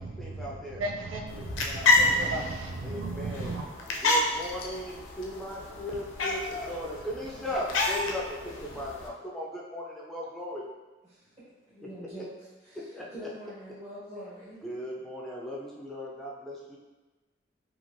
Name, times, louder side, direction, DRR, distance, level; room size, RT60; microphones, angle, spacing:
voice 1, 0.0-0.8 1.3-2.0 2.8-3.6 4.0-10.6 11.8-12.2 12.9-13.3 14.6-16.8, left 1 dB, ahead, -5 dB, 0.4 m, -38 dB
voice 2, 0.8-3.6, right 2 dB, 90° right, 2 dB, 0.4 m, -35 dB
sound 1, 1.3-9.1, left 2 dB, 80° left, 0.4 m, -29 dB
voice 3, 11.7-12.3 13.1-14.6, equal, 35° right, -10 dB, 1.3 m, -44 dB
3.0 x 2.4 x 2.5 m, 1.2 s
head